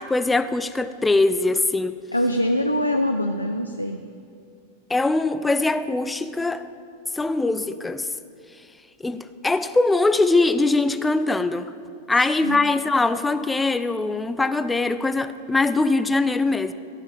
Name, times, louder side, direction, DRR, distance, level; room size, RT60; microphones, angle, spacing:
voice 1, 0.0-2.0 4.9-6.6 7.1-8.1 9.0-11.7 12.1-16.7, left 2 dB, 10° left, 12 dB, 0.5 m, -22 dB
voice 2, 2.1-4.0 12.4-12.6, equal, 85° left, 5 dB, 0.5 m, -23 dB
15.0 x 5.8 x 7.5 m, 2.4 s
figure-of-eight pair, 90°, 0 cm